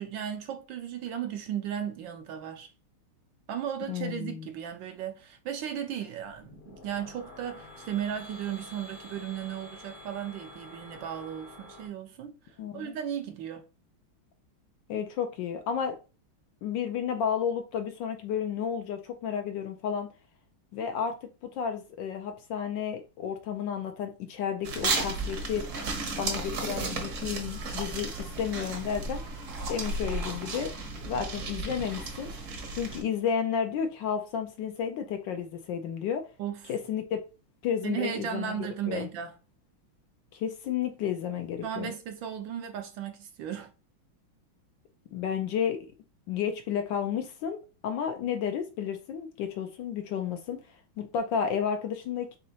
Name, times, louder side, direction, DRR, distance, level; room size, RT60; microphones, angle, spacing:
voice 1, 0.0-2.7 3.5-13.6 36.4-36.7 37.8-39.4 41.6-43.7, right 9 dB, 75° right, 1.2 m, -35 dB
voice 2, 3.9-4.5 12.6-13.0 14.9-16.0 16.6-20.1 20.7-21.2 21.4-25.7 26.2-29.2 29.7-30.7 31.0-32.3 32.7-36.3 36.7-37.2 37.6-39.1 40.3-41.9 45.1-45.9 46.3-50.6 51.0-52.4, left 8 dB, 75° left, 1.1 m, -32 dB
sound 1, 6.2-11.9, left 1 dB, 40° left, 0.7 m, -48 dB
sound 2, 24.6-33.0, right 3 dB, 50° right, 1.0 m, -34 dB
4.2 x 3.7 x 2.7 m
omnidirectional pair, 2.3 m